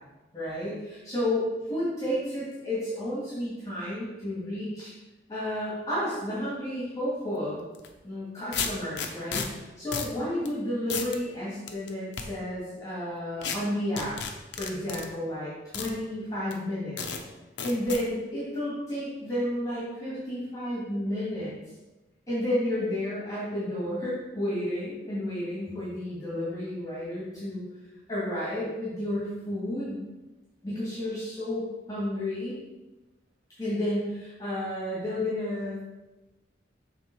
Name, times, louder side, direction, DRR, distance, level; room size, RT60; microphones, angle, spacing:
voice 1, 0.3-4.9 5.3-7.6 8.0-14.2 14.6-17.2 17.6-21.5 22.3-27.6 28.1-30.0 30.6-32.5 33.6-35.8, left 1 dB, 20° left, -9 dB, 2.0 m, -31 dB
sound 1, 7.7-7.9 8.5-9.5 9.9-10.1 10.5-10.6 10.9-11.2 11.7-12.2 13.4-13.6 14.0-15.1 15.7-15.9 16.5-16.6 17.0-17.2 17.6-18.0, left 6 dB, 75° left, 0.7 m, -32 dB
7.0 x 3.5 x 4.5 m, 1.1 s
head